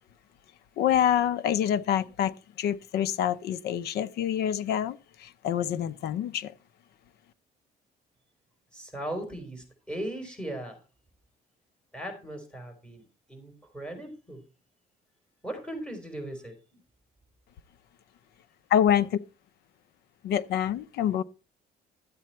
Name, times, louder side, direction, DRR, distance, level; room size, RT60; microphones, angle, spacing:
voice 1, 0.8-6.5 18.7-19.2 20.2-21.2, left 10 dB, 75° left, 0.8 m, -26 dB
voice 2, 8.7-10.8 11.9-14.4 15.4-16.8, right 1 dB, 5° left, 4.8 m, -38 dB
12.5 x 8.5 x 4.4 m
cardioid pair, 110°, 17 cm